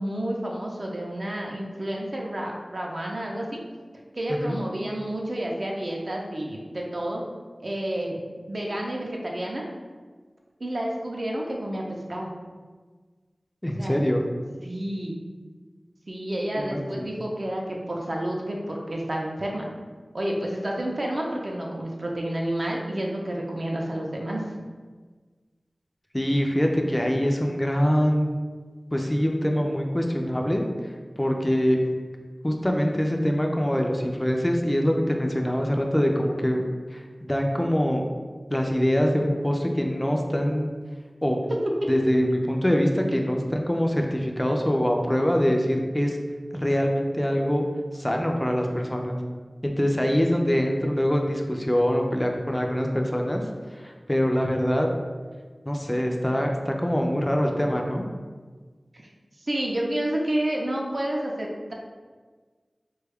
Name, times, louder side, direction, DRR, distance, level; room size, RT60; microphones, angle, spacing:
voice 1, 0.0-3.6 4.1-7.2 7.6-9.6 10.6-12.3 13.7-14.0 14.6-15.2 16.1-19.7 20.1-24.4 41.5-41.9 58.9-59.1 59.4-61.7, right 1 dB, 55° right, -1 dB, 0.5 m, -30 dB
voice 2, 4.3-4.6 13.6-14.2 16.6-17.1 26.1-28.4 28.9-30.6 31.2-31.8 32.4-36.6 36.9-37.0 37.3-38.1 38.5-40.7 41.2-41.4 41.9-46.2 46.5-47.6 47.9-49.2 49.6-53.4 53.8-54.9 55.7-58.0, equal, 15° left, 2 dB, 0.3 m, -24 dB
3.1 x 2.2 x 3.4 m, 1.4 s
wide cardioid pair, 65°, 0 cm